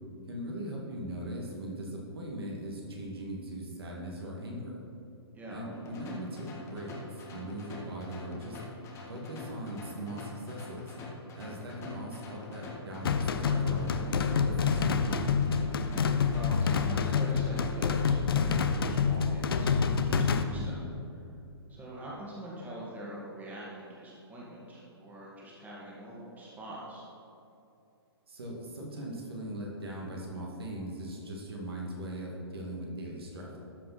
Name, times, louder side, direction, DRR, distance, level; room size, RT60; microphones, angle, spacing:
voice 1, 0.3-4.8 5.5-8.6 9.1-10.9 11.3-15.2 20.5-20.9 28.3-33.5, right 1 dB, 65° right, -2 dB, 2.1 m, -40 dB
voice 2, 5.3-5.7 15.9-20.8 21.7-27.1, right 1 dB, 10° right, -6 dB, 2.0 m, -43 dB
sound 1, 5.7-18.2, left 2 dB, 20° left, 1.5 m, -45 dB
sound 2, 13.0-20.4, left 6 dB, 60° left, 0.6 m, -27 dB
13.0 x 5.9 x 4.2 m, 2.6 s
figure-of-eight pair, 125°, 14 cm